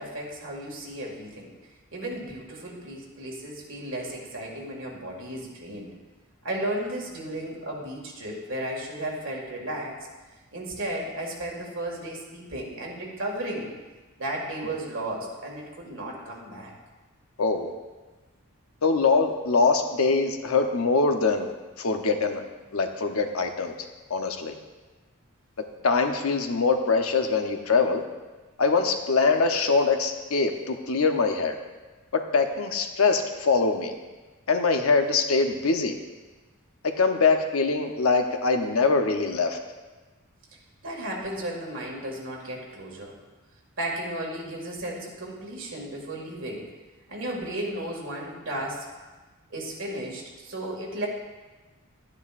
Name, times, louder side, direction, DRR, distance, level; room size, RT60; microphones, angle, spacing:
voice 1, 0.0-1.5 1.9-5.9 6.4-10.0 10.5-13.7 14.2-16.7 40.8-43.1 43.8-46.7 47.1-48.9 49.5-51.1, right 1 dB, 60° right, -2 dB, 2.1 m, -34 dB
voice 2, 17.4-17.7 18.8-22.4 22.7-23.7 24.1-24.5 25.8-28.0 28.6-31.5 32.1-33.9 34.5-36.0 37.0-39.6, left 4 dB, 75° left, 5 dB, 0.8 m, -23 dB
11.5 x 9.7 x 2.5 m, 1.2 s
head